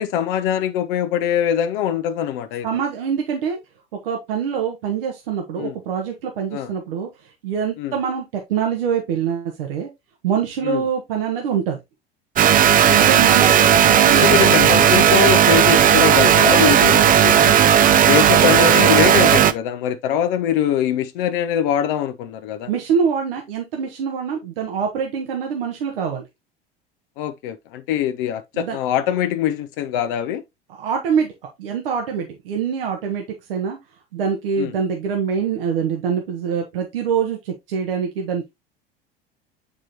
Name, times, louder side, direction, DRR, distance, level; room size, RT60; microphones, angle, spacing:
voice 1, 0.0-2.7 5.6-5.8 6.5-6.7 7.8-7.9 10.6-10.8 12.9-13.0 14.1-17.6 17.9-22.7 27.2-30.4 34.6-34.7, left 10 dB, 60° left, 0.8 m, -22 dB
voice 2, 2.6-3.6 4.0-7.1 7.4-9.9 10.2-11.8 12.9-14.4 22.7-26.2 28.5-28.8 30.8-31.3 31.6-33.2 33.5-33.8 34.1-38.5, right 7 dB, 70° right, 1.3 m, -24 dB
sound 1, 12.4-19.5, right 9 dB, 30° right, 0.6 m, -14 dB
7.5 x 4.9 x 2.9 m
figure-of-eight pair, 70°, 29 cm